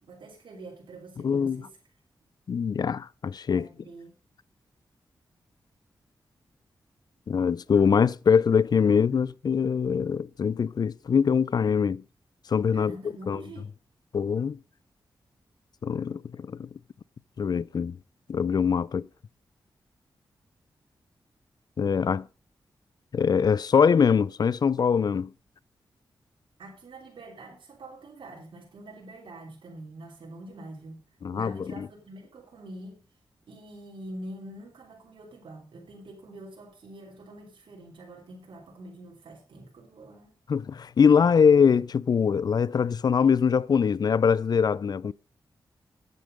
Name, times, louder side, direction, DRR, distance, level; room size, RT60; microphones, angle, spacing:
voice 1, 0.0-1.7 3.5-4.1 12.7-13.7 26.6-31.0 31.3-33.0 33.5-40.4, right 1 dB, 75° right, 3.0 m, -45 dB
voice 2, 1.2-1.7 2.5-3.7 7.3-12.0 12.5-12.9 13.3-13.4 14.1-14.6 15.8-16.7 17.4-18.0 18.3-19.1 21.8-22.3 23.1-25.3 31.2-31.9 40.5-45.1, left 6 dB, 50° left, 0.4 m, -23 dB
9.3 x 8.1 x 5.1 m
cardioid pair, 65°, 9 cm